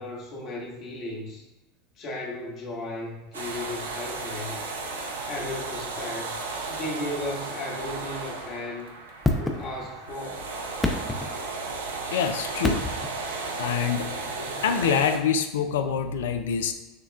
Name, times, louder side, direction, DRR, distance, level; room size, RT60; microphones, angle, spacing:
voice 1, 0.0-1.4 2.0-4.6 5.2-6.4 6.7-8.9 9.3-10.4, left 1 dB, 45° left, -2 dB, 1.2 m, -35 dB
sound 1, 3.3-15.2, right 3 dB, 85° right, 0.5 m, -34 dB
sound 2, 9.2-10.1 10.6-11.9 12.6-13.3 14.8-14.9, left 2 dB, 10° left, 0.5 m, -28 dB
voice 2, 12.1-12.9 13.6-16.7, left 7 dB, 75° left, 8 dB, 0.4 m, -26 dB
6.5 x 2.3 x 2.3 m, 1.1 s
hypercardioid pair, 85°, 0 cm